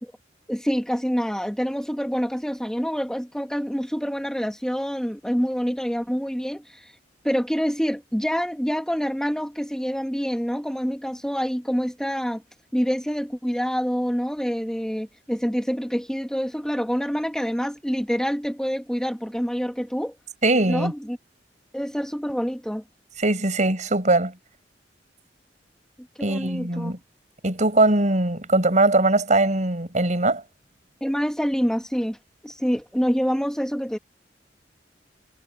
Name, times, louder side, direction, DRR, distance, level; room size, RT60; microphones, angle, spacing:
voice 1, 0.5-6.8 7.2-12.4 12.7-20.1 20.7-21.2 21.7-22.8 26.2-26.9 31.0-32.2 32.4-34.0, equal, 5° left, 2.3 m, -26 dB
voice 2, 20.4-20.9 23.2-24.3 26.2-27.0 27.4-30.4, right 2 dB, 45° right, 6.3 m, -21 dB
head